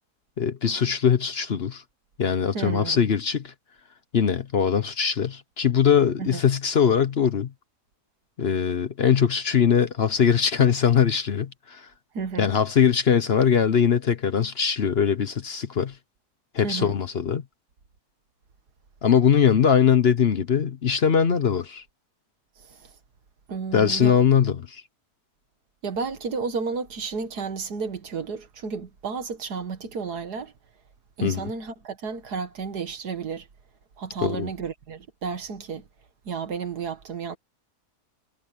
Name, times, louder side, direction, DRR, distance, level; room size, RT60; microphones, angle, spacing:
voice 1, 0.4-1.8 2.2-3.5 4.1-7.5 8.4-11.9 12.4-15.9 16.5-17.4 19.0-21.8 23.7-24.8 31.2-31.5 34.2-34.5, left 7 dB, 45° left, 1.0 m, -21 dB
voice 2, 2.5-3.0 6.2-6.4 12.1-12.5 16.6-16.9 22.6-22.9 23.5-24.2 25.8-30.5 31.2-33.5 34.0-35.8 36.3-37.4, right 5 dB, 90° right, 2.2 m, -32 dB
omnidirectional pair, 1.6 m